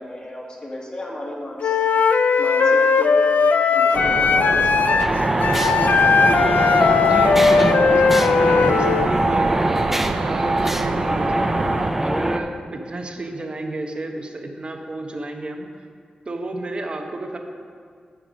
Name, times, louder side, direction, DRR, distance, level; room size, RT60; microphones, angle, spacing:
voice 1, 0.0-1.8 2.4-3.3 3.7-6.1, left 1 dB, 35° left, -3 dB, 1.6 m, -34 dB
Wind instrument woodwind instrument, 1.6-9.1, left 5 dB, 80° left, 0.4 m, -18 dB
sound 1, 3.9-11.9, right 5 dB, 80° right, 0.4 m, -27 dB
sound 2, 5.0-12.4, right 1 dB, 10° right, 0.4 m, -22 dB
voice 2, 7.0-9.6 10.2-11.5 12.0-15.7 16.3-17.4, right 2 dB, 40° right, 4 dB, 0.9 m, -31 dB
9.3 x 6.7 x 5.1 m, 2.1 s
wide cardioid pair, 105°, 3 cm